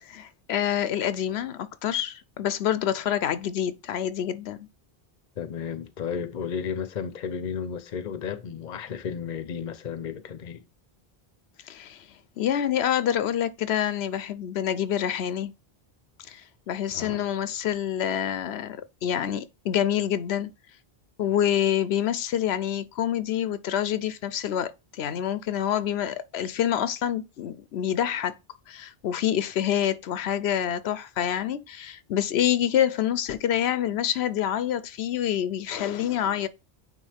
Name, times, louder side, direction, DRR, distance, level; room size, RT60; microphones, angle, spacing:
voice 1, 0.0-4.7 11.7-12.0 12.4-15.5 16.3-16.4 16.7-20.5 21.2-24.7 25.0-28.4 28.7-36.5, left 10 dB, 90° left, 0.9 m, -27 dB
voice 2, 5.4-10.6 16.9-17.2, left 7 dB, 50° left, 0.8 m, -33 dB
9.1 x 3.5 x 3.4 m
omnidirectional pair, 1.0 m